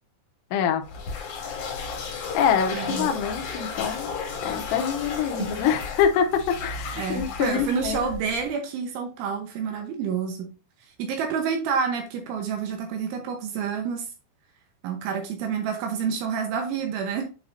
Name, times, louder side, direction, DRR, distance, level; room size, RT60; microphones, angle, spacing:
voice 1, 0.5-0.8 2.3-4.1 4.4-8.0, left 7 dB, 80° left, 5 dB, 3.0 m, -25 dB
sound 1, 0.8-8.5, left 5 dB, 60° left, 2.0 m, -34 dB
voice 2, 2.7-3.1 5.4-5.5 7.0-10.5 11.0-14.0 14.8-17.2, right 6 dB, 80° right, 3 dB, 3.2 m, -28 dB
9.7 x 4.1 x 2.6 m, 0.33 s
omnidirectional pair, 5.7 m